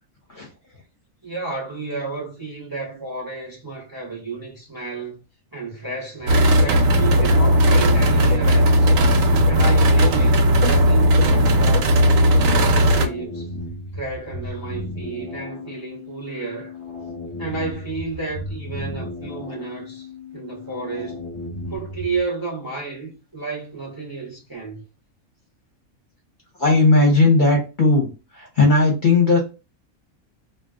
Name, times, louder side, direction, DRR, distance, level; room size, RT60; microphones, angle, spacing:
voice 1, 1.2-5.2 5.5-8.9 9.5-13.5 13.9-16.7 17.4-20.1 20.3-21.2 21.7-24.8, right 3 dB, 20° right, 0.6 m, -31 dB
sound 1, 6.2-22.2, left 2 dB, 10° left, 0.9 m, -35 dB
sound 2, 6.3-13.1, equal, 75° right, 1.0 m, -16 dB
voice 2, 26.6-28.1 28.3-29.4, left 3 dB, 45° left, 0.7 m, -16 dB
2.4 x 2.2 x 3.6 m
omnidirectional pair, 1.4 m